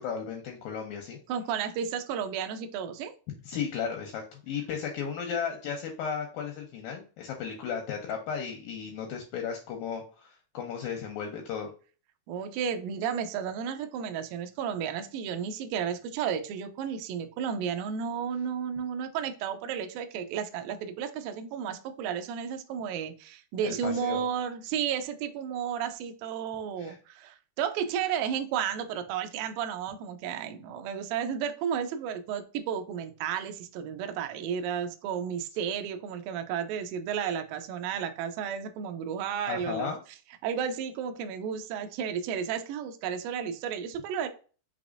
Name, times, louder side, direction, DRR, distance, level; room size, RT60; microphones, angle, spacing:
voice 1, 0.0-1.2 3.5-11.7 23.6-24.2 26.8-27.0 39.5-40.0, left 7 dB, 85° left, 2 dB, 2.1 m, -35 dB
voice 2, 1.3-3.1 12.3-39.9 40.4-44.3, right 8 dB, 85° right, 7 dB, 2.0 m, -33 dB
5.9 x 3.3 x 2.5 m, 0.37 s
omnidirectional pair, 4.8 m